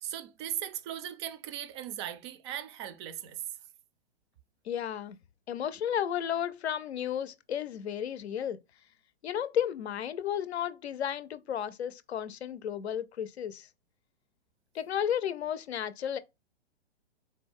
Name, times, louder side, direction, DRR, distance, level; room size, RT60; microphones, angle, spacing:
voice 1, 0.0-3.4, right 11 dB, 30° right, 0.4 m, -38 dB
voice 2, 4.6-5.2 5.5-8.6 9.2-13.7 14.7-16.2, left 9 dB, 80° left, 0.6 m, -33 dB
3.9 x 2.1 x 3.6 m
hypercardioid pair, 125°, 32 cm